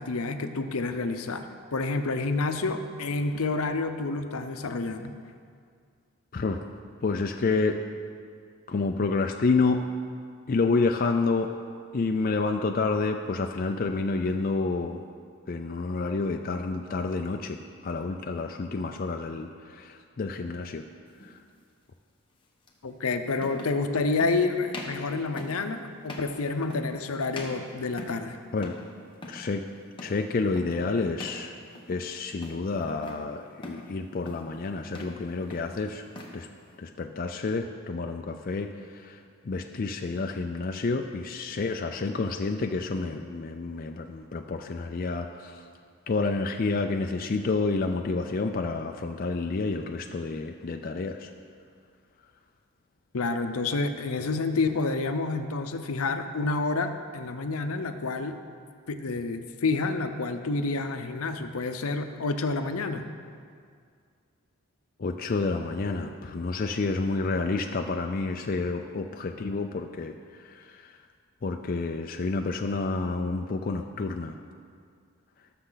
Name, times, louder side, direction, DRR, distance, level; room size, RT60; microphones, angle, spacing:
voice 1, 0.0-5.1 22.8-28.4 53.1-58.3 58.9-63.1, left 3 dB, 75° left, 8 dB, 0.7 m, -29 dB
voice 2, 6.3-6.6 7.0-7.8 8.7-9.9 10.5-11.5 11.9-15.0 15.5-20.9 21.2-21.4 28.5-28.8 29.3-29.6 30.0-31.5 31.9-36.0 36.3-36.5 36.8-45.7 46.1-51.3 65.0-71.0 71.4-74.4, left 3 dB, 40° left, 4 dB, 0.4 m, -29 dB
sound 1, 21.2-21.4 22.7-22.8 23.4-23.8 24.2-24.4 24.7-25.0 25.4-25.6 26.0-26.3 26.7-27.0 27.3-28.3 28.6-28.9 29.1-29.5 30.0-30.2 30.6-30.8 31.2-31.4 31.7-32.1 32.4-33.2 33.6-33.9 34.2-34.5 34.8-35.2 35.5-36.4, left 1 dB, 20° left, 1.1 m, -42 dB
18.0 x 6.5 x 4.0 m, 2.2 s
head